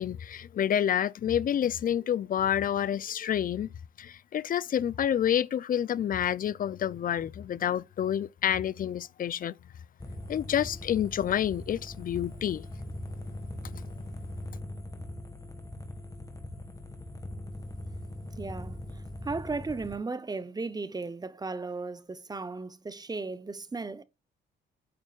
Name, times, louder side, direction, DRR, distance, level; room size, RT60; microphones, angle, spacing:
voice 1, 0.0-3.7 4.0-9.6 10.3-12.7 13.6-13.8, left 10 dB, 45° left, 0.5 m, -28 dB
sound 1, 10.0-20.0, left 1 dB, 15° left, 1.7 m, -41 dB
voice 2, 18.3-24.0, right 3 dB, 20° right, 0.8 m, -36 dB
9.5 x 7.2 x 2.4 m
cardioid pair, 90°, 20 cm